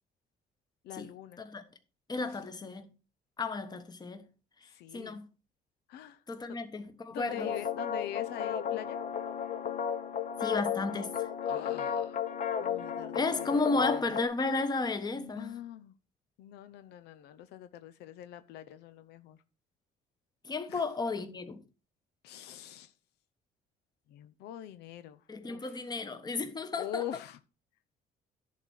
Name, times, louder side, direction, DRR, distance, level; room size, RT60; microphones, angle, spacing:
voice 1, 0.8-1.4 4.7-5.2 5.9-6.2 7.1-9.0 11.5-12.2 12.6-14.0 15.1-15.9 16.4-19.4 20.7-20.8 22.2-22.9 24.1-25.8 26.8-27.4, left 11 dB, 80° left, 0.7 m, -43 dB
voice 2, 2.1-2.9 3.4-4.3 4.6-5.3 6.3-7.5 10.4-11.3 13.1-15.5 20.4-21.6 25.3-27.1, left 3 dB, 25° left, 1.3 m, -33 dB
sound 1, 7.3-14.2, left 8 dB, 50° left, 1.1 m, -34 dB
11.0 x 4.2 x 6.3 m
cardioid pair, 110°, 17 cm